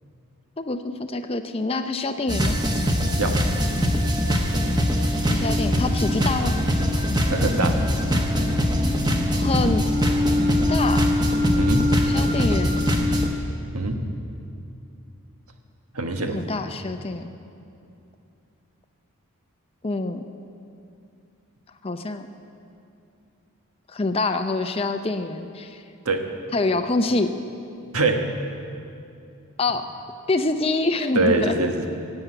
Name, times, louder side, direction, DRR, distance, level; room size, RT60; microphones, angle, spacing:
voice 1, 0.6-2.6 5.3-6.6 9.3-9.8 10.7-11.1 12.0-12.8 16.3-17.3 19.8-20.2 21.8-22.3 23.9-25.8 26.5-27.3 29.6-29.9 30.3-31.5, left 2 dB, 25° left, 7 dB, 0.5 m, -25 dB
sound 1, 2.3-13.3, left 1 dB, 20° right, 1.1 m, -22 dB
voice 2, 7.3-7.8 11.5-11.9 13.7-14.0 15.9-16.4 26.0-26.2 27.9-28.2 31.1-31.9, right 2 dB, 80° right, 5 dB, 1.4 m, -23 dB
17.0 x 8.0 x 9.1 m, 2.6 s
head